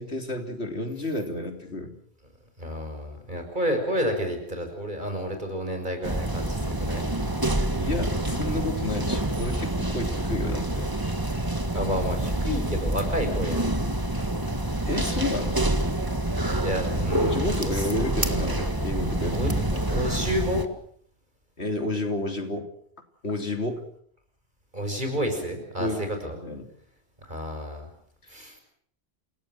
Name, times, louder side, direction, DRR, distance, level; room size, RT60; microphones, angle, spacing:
voice 1, 0.0-1.9 7.8-10.9 14.9-15.6 17.2-19.4 21.6-22.7 23.2-23.8 25.8-26.0 26.4-26.7, left 2 dB, 85° left, 5 dB, 3.6 m, -30 dB
voice 2, 2.6-7.1 11.7-13.7 16.6-17.9 19.1-20.7 24.7-26.4 27.2-27.9 28.3-28.6, equal, 45° right, 5 dB, 6.2 m, -30 dB
sound 1, 6.0-20.6, right 1 dB, 20° right, 1.8 m, -27 dB
28.5 x 18.0 x 7.8 m, 0.63 s
omnidirectional pair, 1.1 m